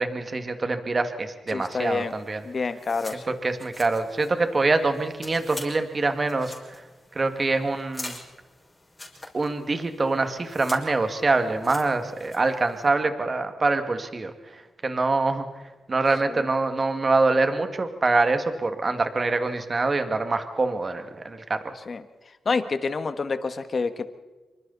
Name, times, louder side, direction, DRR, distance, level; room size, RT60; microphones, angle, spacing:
voice 1, 0.0-2.4 3.3-6.7 7.1-8.2 9.3-15.4 15.9-21.7, right 3 dB, 35° right, 7 dB, 2.1 m, -25 dB
voice 2, 1.5-2.1 2.4-3.3 16.3-16.5 21.9-22.0 22.5-24.1, left 4 dB, 50° left, 10 dB, 1.6 m, -28 dB
sound 1, 1.6-12.9, left 2 dB, 20° left, 5.7 m, -45 dB
26.5 x 24.5 x 4.2 m, 1.2 s
cardioid pair, 85°, 0 cm